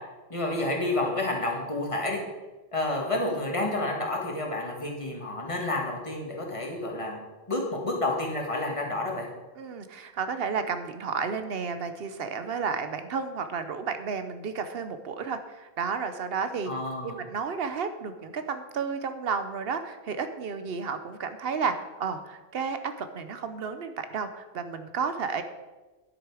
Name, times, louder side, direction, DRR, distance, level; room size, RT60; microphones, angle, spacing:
voice 1, 0.3-2.2 2.7-7.2 7.5-9.3 16.7-17.2, left 2 dB, 30° left, 0 dB, 1.9 m, -29 dB
voice 2, 9.6-16.7 17.0-25.4, right 5 dB, 65° right, 9 dB, 0.9 m, -32 dB
10.0 x 7.9 x 4.8 m, 1.2 s
omnidirectional pair, 1.1 m